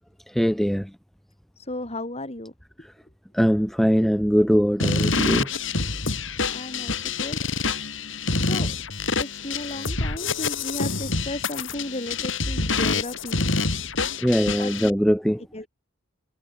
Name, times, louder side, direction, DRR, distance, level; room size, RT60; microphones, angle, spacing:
voice 1, 0.3-0.9 3.3-5.5 14.2-15.4, equal, ahead, 1.7 m, -21 dB
voice 2, 1.6-2.5 6.5-7.4 8.4-8.7 9.2-13.5 14.6-14.9 15.5-15.7, left 1 dB, 30° left, 3.8 m, -35 dB
sound 1, 4.8-14.9, left 3 dB, 65° left, 5.4 m, -26 dB
head